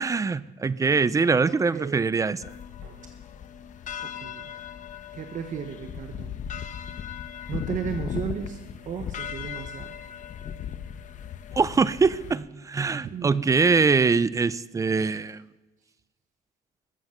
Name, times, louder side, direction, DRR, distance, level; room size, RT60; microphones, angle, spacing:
voice 1, 0.0-2.4 11.5-15.4, right 4 dB, 20° right, 0.5 m, -23 dB
voice 2, 1.4-2.1 2.8-3.1 4.0-4.5 5.1-6.5 7.5-8.6 8.9-10.0 13.0-13.5 14.9-15.2, right 7 dB, 50° right, 1.2 m, -35 dB
sound 1, 2.4-12.3, left 8 dB, 50° left, 1.0 m, -37 dB
21.0 x 7.8 x 6.5 m
cardioid pair, 110°, 17 cm